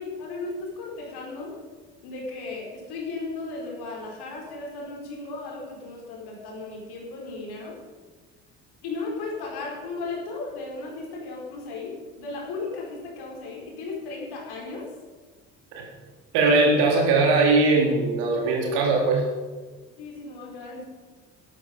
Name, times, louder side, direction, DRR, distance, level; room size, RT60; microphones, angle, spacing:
voice 1, 0.0-1.6 2.0-7.8 8.8-14.9 20.0-20.8, left 3 dB, 55° left, -1 dB, 4.3 m, -35 dB
voice 2, 16.3-19.2, right 3 dB, 60° right, 0 dB, 3.4 m, -20 dB
12.5 x 12.0 x 5.2 m, 1.4 s
figure-of-eight pair, 50°, 45 cm